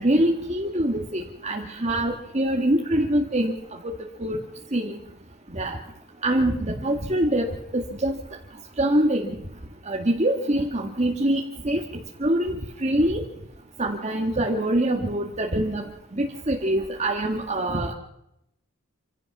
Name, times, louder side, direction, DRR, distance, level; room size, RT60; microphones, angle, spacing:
voice 1, 0.0-3.9 4.2-4.4 4.7-5.0 5.5-5.8 6.2-7.5 7.7-8.2 8.8-9.4 9.9-11.8 12.2-13.2 13.8-15.8 16.1-17.9, right 1 dB, 35° right, 0 dB, 1.8 m, -24 dB
27.0 x 16.5 x 6.0 m, 0.82 s
head